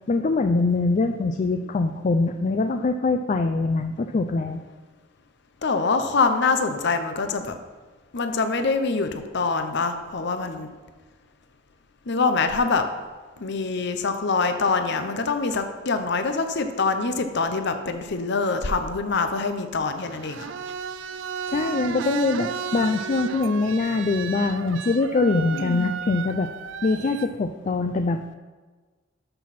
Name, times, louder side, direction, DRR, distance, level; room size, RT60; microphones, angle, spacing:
voice 1, 0.1-4.6 21.5-26.5 26.8-28.2, left 3 dB, 40° left, 6 dB, 0.4 m, -23 dB
voice 2, 5.6-7.5 8.1-10.7 12.1-12.9 13.4-20.5 25.5-25.9, left 4 dB, 60° left, 8 dB, 0.8 m, -25 dB
sound 1, 20.0-27.3, right 7 dB, 65° right, 0.5 m, -34 dB
12.0 x 6.0 x 4.2 m, 1.4 s
head